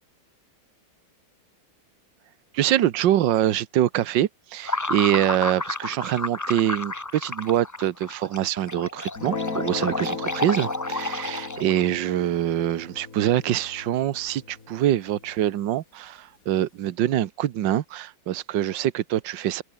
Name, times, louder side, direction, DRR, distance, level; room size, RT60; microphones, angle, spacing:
voice 1, 2.5-19.6, right 12 dB, 70° right, 1.6 m, -24 dB
sound 1, 4.6-11.9, left 2 dB, 20° left, 0.5 m, -31 dB
Guitar, 9.1-15.7, left 4 dB, 45° left, 3.1 m, -37 dB
open air
omnidirectional pair, 2.1 m